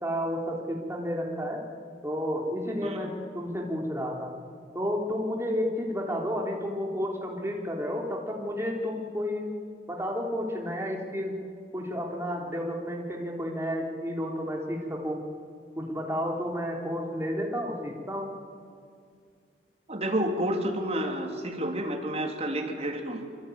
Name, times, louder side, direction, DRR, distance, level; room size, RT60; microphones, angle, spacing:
voice 1, 0.0-1.6 2.0-4.3 4.7-9.5 9.9-11.4 11.7-15.2 15.8-18.3, equal, 15° right, 0 dB, 3.5 m, -31 dB
voice 2, 19.9-23.3, right 1 dB, 35° right, 3 dB, 3.0 m, -30 dB
25.5 x 24.5 x 9.4 m, 2.3 s
head